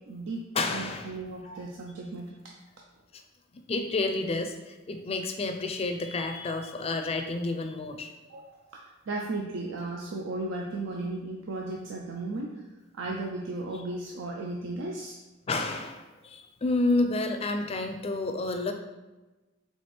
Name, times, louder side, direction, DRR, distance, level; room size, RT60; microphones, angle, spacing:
voice 1, 0.0-2.5 8.2-12.5 12.9-15.2, right 2 dB, 75° right, -1 dB, 0.5 m, -35 dB
voice 2, 0.5-1.1 1.4-1.7 3.5-8.1 15.5-18.7, left 2 dB, 30° left, 6 dB, 0.4 m, -30 dB
4.3 x 3.4 x 3.4 m, 1.1 s
head